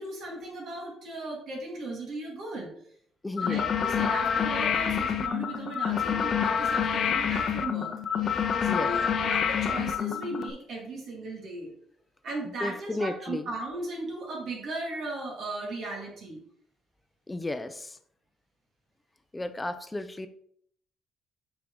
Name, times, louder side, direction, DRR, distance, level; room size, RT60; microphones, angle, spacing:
voice 1, 0.0-2.7 3.4-7.9 8.6-11.7 12.2-16.4, right 2 dB, 65° right, -1 dB, 2.1 m, -37 dB
voice 2, 3.2-3.6 8.5-8.9 12.6-13.5 17.3-18.0 19.3-20.3, left 2 dB, 15° left, 10 dB, 0.6 m, -34 dB
sound 1, 3.4-10.5, left 7 dB, 55° left, 0.6 m, -27 dB
6.0 x 4.5 x 3.8 m, 0.64 s
cardioid pair, 90°, 0 cm